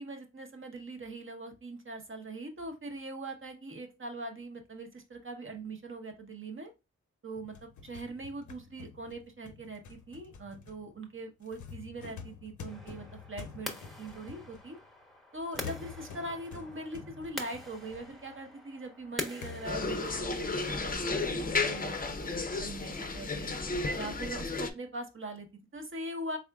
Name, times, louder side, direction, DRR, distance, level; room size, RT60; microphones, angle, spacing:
voice 1, 0.0-6.7 7.2-14.8 15.3-23.5 23.9-26.4, right 2 dB, 45° right, 4 dB, 0.9 m, -42 dB
sound 1, 7.3-14.9 15.5-18.5 18.9-19.0 19.4-22.3 22.7-22.8 23.5-23.7, left 6 dB, 85° left, 0.6 m, -48 dB
sound 2, 12.7-21.0, left 1 dB, ahead, 0.8 m, -45 dB
sound 3, 19.6-24.7, left 3 dB, 30° left, 0.5 m, -33 dB
3.7 x 3.5 x 2.3 m, 0.26 s
wide cardioid pair, 70°, 29 cm